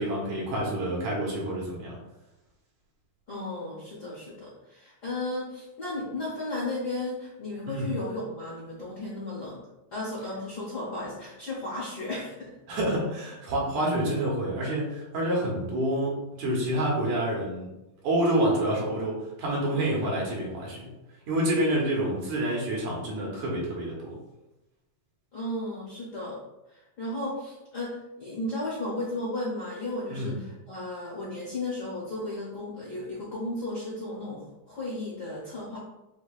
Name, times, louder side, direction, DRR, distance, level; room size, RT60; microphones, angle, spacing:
voice 1, 0.0-1.9 7.7-7.9 12.7-17.6 18.0-20.9 21.3-24.2 30.1-30.4, right 1 dB, 75° right, -3 dB, 2.5 m, -28 dB
voice 2, 3.3-9.6 9.9-12.6 25.3-26.4 26.7-35.8, left 2 dB, 60° left, -8 dB, 1.0 m, -34 dB
6.9 x 2.9 x 2.4 m, 0.96 s
omnidirectional pair, 3.5 m